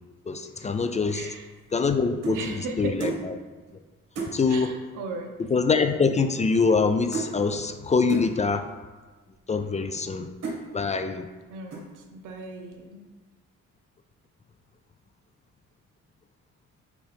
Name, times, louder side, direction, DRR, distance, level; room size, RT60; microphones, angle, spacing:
voice 1, 0.3-1.3 1.7-2.4 2.8-3.3 4.3-4.7 5.5-8.7 9.5-10.3 10.7-11.3, left 4 dB, 25° left, 8 dB, 0.4 m, -24 dB
voice 2, 1.1-1.5 2.3-3.1 4.5-5.4 11.5-13.1, right 3 dB, 85° right, 4 dB, 0.9 m, -37 dB
sound 1, 1.3-2.5 3.0-3.3 3.7-3.8 4.1-4.4 5.3-5.4 5.6-5.9 6.2-6.9 7.1-7.4 8.1-8.3 9.0-9.1 9.7-10.1 10.4-10.7 11.2-11.4 11.7-12.1, right 4 dB, 60° right, 1.8 m, -34 dB
6.2 x 4.9 x 3.5 m, 1.3 s
cardioid pair, 90°, 30 cm